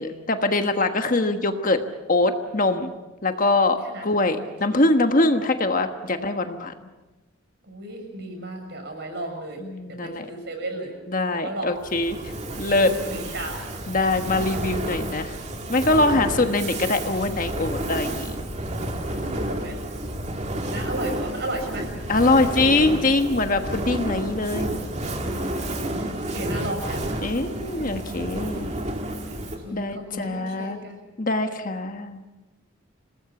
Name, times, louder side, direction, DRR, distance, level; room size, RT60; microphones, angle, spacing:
voice 1, 0.0-1.8 2.1-2.9 3.2-6.7 9.6-10.3 11.1-12.2 12.6-12.9 13.9-15.3 15.7-18.3 22.1-24.7 25.2-25.5 27.2-28.7 29.7-30.8 31.2-32.2, left 2 dB, 40° left, 7 dB, 1.3 m, -23 dB
voice 2, 7.6-9.6 9.9-10.9 11.3-11.7 12.7-13.6 16.1-16.5 19.2-19.8 20.7-21.9 25.9-27.0 29.6-31.0, right 1 dB, 55° right, 3 dB, 6.9 m, -34 dB
Fire, 11.8-29.7, right 1 dB, 35° right, 2.3 m, -31 dB
27.0 x 19.0 x 7.2 m, 1.1 s
head